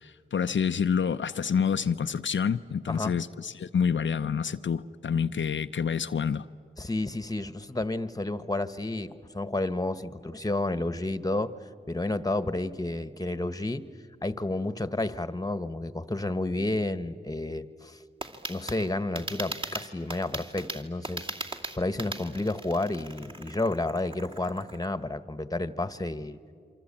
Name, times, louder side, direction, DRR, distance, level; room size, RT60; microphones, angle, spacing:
voice 1, 0.0-6.5, left 7 dB, 70° left, 8 dB, 0.6 m, -28 dB
voice 2, 6.8-11.5 11.9-13.8 14.2-18.0 18.5-21.3 21.7-26.4, left 2 dB, 20° left, 13 dB, 1.3 m, -31 dB
sound 1, 18.2-24.9, right 2 dB, 25° right, 2.5 m, -39 dB
27.5 x 25.0 x 8.7 m, 2.2 s
cardioid pair, 50°, 20 cm